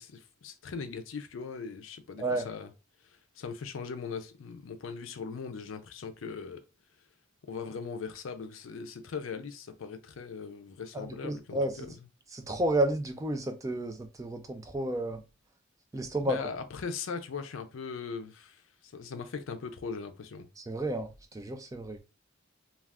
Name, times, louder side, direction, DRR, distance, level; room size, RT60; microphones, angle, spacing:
voice 1, 0.0-2.7 3.4-6.6 7.4-11.9 16.2-20.5, left 5 dB, 75° left, 0.4 m, -39 dB
voice 2, 10.9-11.9 12.3-15.2 15.9-16.4 20.6-22.0, right 1 dB, 15° right, 0.3 m, -31 dB
2.3 x 2.3 x 3.4 m
head